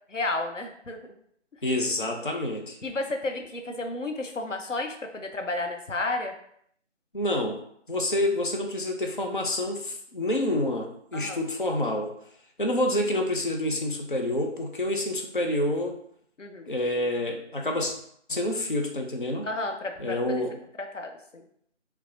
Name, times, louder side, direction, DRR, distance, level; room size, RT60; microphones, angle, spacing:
voice 1, 0.1-1.1 2.8-6.3 11.1-11.4 16.4-16.7 19.4-20.4 20.8-21.4, left 2 dB, 90° left, 3 dB, 0.8 m, -32 dB
voice 2, 1.6-2.8 7.1-7.6 7.9-12.1 12.6-16.0 16.7-17.9 18.3-19.5 20.0-20.5, left 1 dB, 45° left, 1 dB, 0.5 m, -28 dB
5.2 x 2.0 x 2.7 m, 0.67 s
figure-of-eight pair, 165°, 36 cm